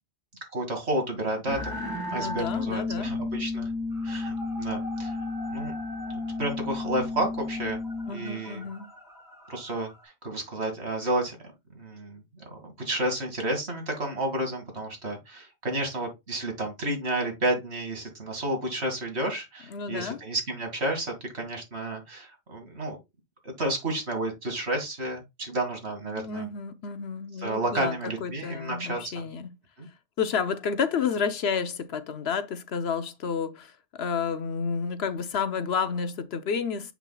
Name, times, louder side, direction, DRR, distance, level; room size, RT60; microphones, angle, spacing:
voice 1, 0.5-1.7 2.1-3.7 4.0-5.1 5.5-5.7 6.4-7.8 8.1-8.7 9.5-11.4 11.7-23.0 23.4-26.5 27.4-29.1 29.8-29.9, right 1 dB, 85° right, 2.7 m, -31 dB
sound 1, 1.5-8.1, left 2 dB, 20° right, 1.6 m, -32 dB
voice 2, 2.1-3.2 8.1-8.9 19.7-20.2 26.0-29.5 30.2-36.9, left 6 dB, 75° left, 1.1 m, -30 dB
sound 2, 3.9-10.0, equal, 5° right, 3.5 m, -45 dB
7.5 x 6.1 x 2.3 m
omnidirectional pair, 1.1 m